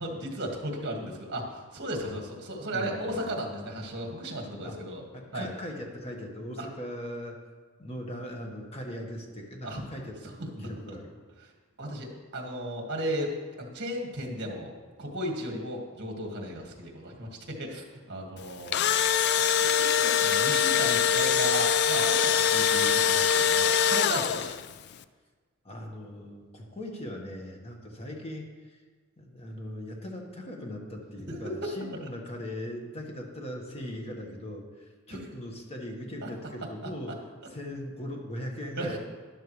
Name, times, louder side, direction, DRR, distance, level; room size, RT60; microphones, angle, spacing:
voice 1, 0.0-5.0 5.3-5.5 6.6-6.7 9.6-9.8 10.2-10.7 11.8-14.7 15.0-18.8 19.4-24.6 31.3-31.4 36.2-36.3 38.8-39.0, right 1 dB, 50° right, 1 dB, 2.0 m, -35 dB
voice 2, 2.7-3.2 4.6-4.8 5.1-7.4 7.8-10.3 10.6-11.1 25.6-28.8 29.2-37.2 37.5-39.0, left 1 dB, 30° left, 1 dB, 1.5 m, -39 dB
Engine / Drill, 18.5-24.7, left 8 dB, 50° left, 0.4 m, -23 dB
12.5 x 11.0 x 3.3 m, 1.4 s
head